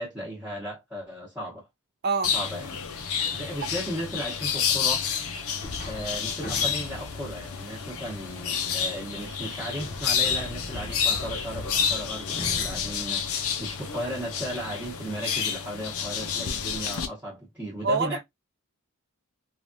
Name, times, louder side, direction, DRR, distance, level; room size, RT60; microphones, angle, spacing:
voice 1, 0.0-1.7 2.3-2.8 3.3-5.1 5.8-18.2, equal, 5° right, 1.0 m, -35 dB
sound 1, 2.2-17.1, left 7 dB, 70° left, 0.6 m, -30 dB
sound 2, 5.6-14.2, left 1 dB, 35° left, 0.8 m, -41 dB
voice 2, 17.8-18.2, right 4 dB, 50° right, 0.6 m, -25 dB
3.2 x 2.4 x 2.6 m
head